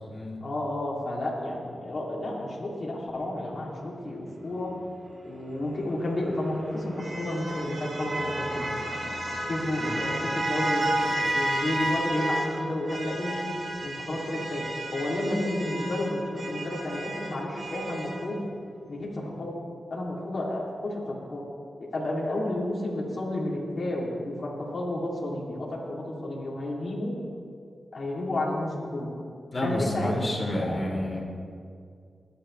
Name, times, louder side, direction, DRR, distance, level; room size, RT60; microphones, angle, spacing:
voice 1, 0.4-4.7 5.2-8.8 9.5-13.5 13.8-14.6 14.9-18.4 18.9-19.5 19.9-21.4 21.9-27.1 27.9-29.1 29.6-30.8, left 1 dB, 55° left, -4 dB, 2.8 m, -31 dB
sound 1, 5.9-12.5 12.9-18.2, right 1 dB, 55° right, 3.2 m, -32 dB
voice 2, 29.5-31.2, left 1 dB, 35° left, -3 dB, 3.8 m, -29 dB
20.5 x 10.0 x 3.3 m, 2.3 s
cardioid pair, 55°, 0 cm